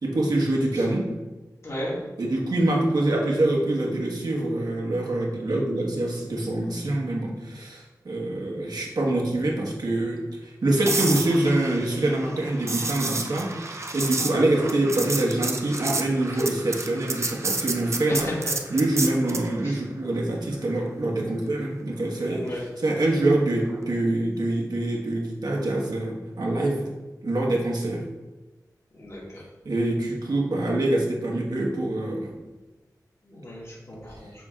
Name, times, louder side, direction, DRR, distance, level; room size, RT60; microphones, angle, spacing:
voice 1, 0.0-1.1 2.2-18.3 18.7-26.9 27.2-28.0 29.6-32.3, right 1 dB, 75° right, -2 dB, 1.4 m, -25 dB
voice 2, 1.6-1.9 18.1-18.3 19.7-19.8 22.3-22.6 29.0-29.4 33.3-34.3, equal, 45° left, -6 dB, 2.0 m, -35 dB
sound 1, 10.9-19.5 23.7-23.9, right 3 dB, 45° right, 0.6 m, -30 dB
7.3 x 5.9 x 2.5 m, 1.1 s
wide cardioid pair, 85°, 7 cm